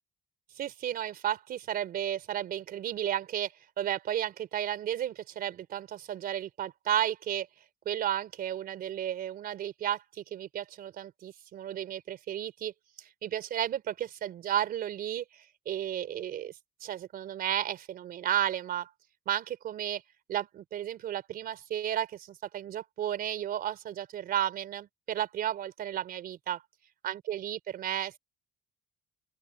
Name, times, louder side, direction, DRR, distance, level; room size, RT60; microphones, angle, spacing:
voice 1, 0.6-7.5 7.9-18.9 19.3-20.0 20.3-26.6 27.0-28.2, right 11 dB, 60° right, 3.7 m, -33 dB
open air
cardioid pair, 110°, 17 cm